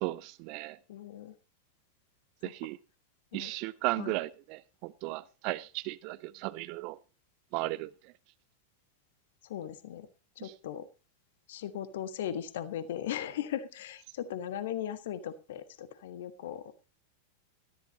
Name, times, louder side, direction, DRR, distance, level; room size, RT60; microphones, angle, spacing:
voice 1, 0.0-0.8 2.4-2.8 3.3-7.0 7.5-7.9 10.4-10.5, right 20 dB, 45° right, 0.6 m, -35 dB
voice 2, 0.9-1.3 3.3-3.5 4.0-4.1 9.4-10.1 10.4-10.9 11.5-16.7, left 10 dB, 55° left, 1.4 m, -38 dB
18.5 x 13.5 x 2.8 m
figure-of-eight pair, 90°, 0 cm